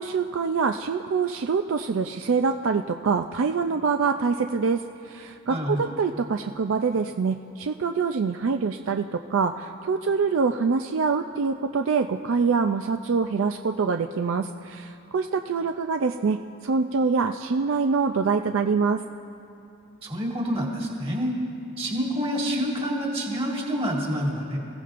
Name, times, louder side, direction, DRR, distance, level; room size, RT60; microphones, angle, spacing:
voice 1, 0.0-16.4 16.6-19.0, right 5 dB, 60° right, 6 dB, 0.4 m, -25 dB
voice 2, 5.5-5.9 20.0-21.4 21.8-24.6, equal, 25° right, -2 dB, 2.0 m, -27 dB
26.0 x 15.5 x 2.5 m, 2.9 s
head